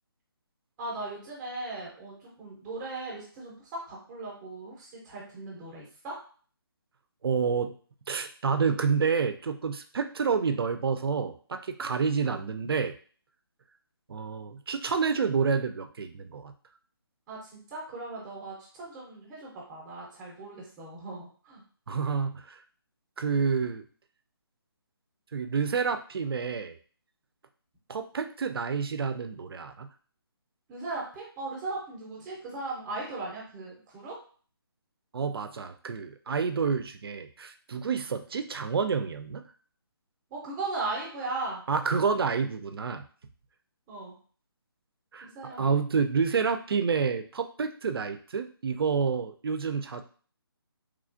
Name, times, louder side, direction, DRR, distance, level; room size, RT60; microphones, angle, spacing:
voice 1, 0.8-6.1 17.3-21.6 30.7-34.2 40.3-42.0 43.9-44.1 45.2-45.6, right 2 dB, 5° right, -5 dB, 0.5 m, -38 dB
voice 2, 7.2-7.7 8.1-12.9 14.1-16.5 21.9-22.6 23.2-23.8 25.3-26.8 27.9-29.9 35.1-39.4 41.7-43.0 45.1-45.3 45.6-50.0, right 5 dB, 70° right, 8 dB, 0.4 m, -29 dB
3.1 x 2.4 x 2.4 m, 0.43 s
hypercardioid pair, 170°, 13 cm